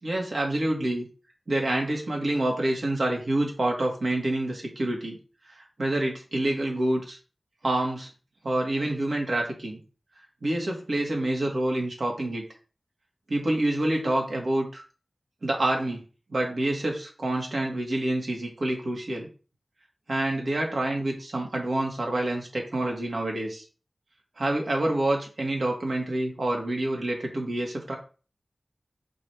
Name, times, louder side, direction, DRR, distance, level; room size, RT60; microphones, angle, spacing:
voice 1, 0.0-1.0 1.5-5.2 5.5-7.2 7.6-8.1 8.4-9.8 10.4-12.4 13.3-14.8 15.4-16.0 16.3-19.3 20.1-23.6 24.4-27.9, right 1 dB, 70° right, 0 dB, 2.3 m, -27 dB
6.0 x 3.3 x 5.9 m, 0.35 s
cardioid pair, 40°, 0 cm